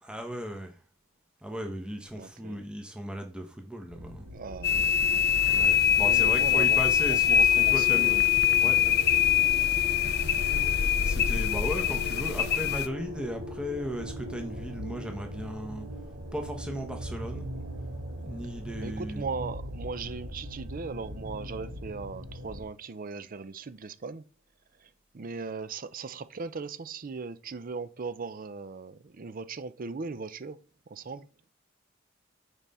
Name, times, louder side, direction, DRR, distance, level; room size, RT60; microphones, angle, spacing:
voice 1, 0.0-0.7 1.4-4.3 5.5-8.2 8.6-8.8 11.0-15.9 16.3-17.5 18.2-19.3, equal, 5° right, 1.1 m, -36 dB
voice 2, 2.1-2.7 4.3-4.9 6.0-6.8 7.1-8.2 18.8-24.3 24.8-30.6 30.9-31.3, right 4 dB, 45° right, 0.5 m, -38 dB
sound 1, 3.9-22.6, equal, 80° right, 3.6 m, -40 dB
sound 2, 4.6-12.9, left 10 dB, 55° left, 0.5 m, -23 dB
5.8 x 5.4 x 4.2 m
head